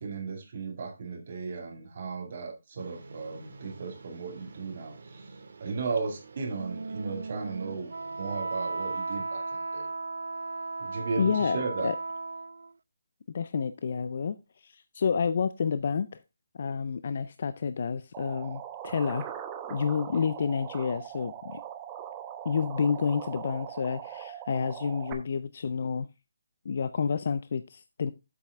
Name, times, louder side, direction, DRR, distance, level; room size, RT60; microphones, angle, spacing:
voice 1, 0.0-5.3 5.6-7.9 8.2-9.4 9.7-9.9 10.8-11.9, right 4 dB, 40° right, 2.1 m, -35 dB
sound 1, 2.8-8.4, right 3 dB, 55° right, 1.8 m, -50 dB
Wind instrument woodwind instrument, 6.5-12.7, right 3 dB, 80° right, 0.3 m, -36 dB
voice 2, 11.2-12.0 13.3-14.4 14.6-16.2 16.5-19.3 19.7-21.6 22.4-26.1 26.7-28.1, left 6 dB, 40° left, 0.4 m, -29 dB
sound 2, 18.1-25.1, right 10 dB, 15° right, 0.8 m, -41 dB
7.7 x 7.4 x 3.5 m
hypercardioid pair, 170°, 0 cm